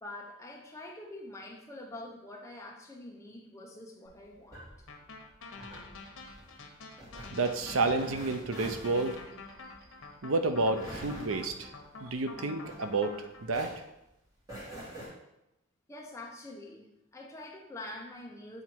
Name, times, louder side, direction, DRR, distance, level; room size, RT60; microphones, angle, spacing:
voice 1, 0.0-4.6 15.9-18.6, left 1 dB, 15° left, 0 dB, 0.9 m, -45 dB
sound 1, 4.0-13.2 13.5-15.1, equal, 15° right, 2.5 m, -46 dB
sound 2, 4.9-13.4, left 3 dB, 85° left, 1.1 m, -48 dB
voice 2, 7.3-9.2 10.2-11.7 12.0-13.1 13.4-13.7, right 3 dB, 80° right, 8 dB, 0.6 m, -30 dB
7.9 x 4.2 x 4.5 m, 0.87 s
head